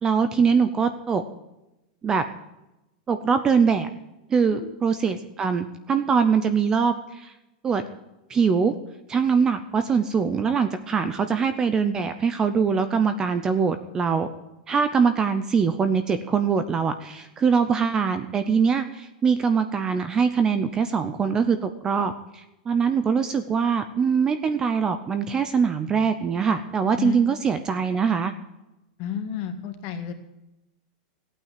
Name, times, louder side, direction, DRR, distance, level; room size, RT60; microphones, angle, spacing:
voice 1, 0.0-1.2 2.0-2.2 3.1-3.9 4.3-7.3 7.6-7.8 8.3-8.7 9.1-14.3 14.7-28.3, right 6 dB, 15° right, 10 dB, 0.6 m, -23 dB
voice 2, 29.0-30.1, left 9 dB, 40° left, 6 dB, 1.7 m, -31 dB
15.0 x 8.9 x 7.5 m, 0.95 s
supercardioid pair, 170°, 5 cm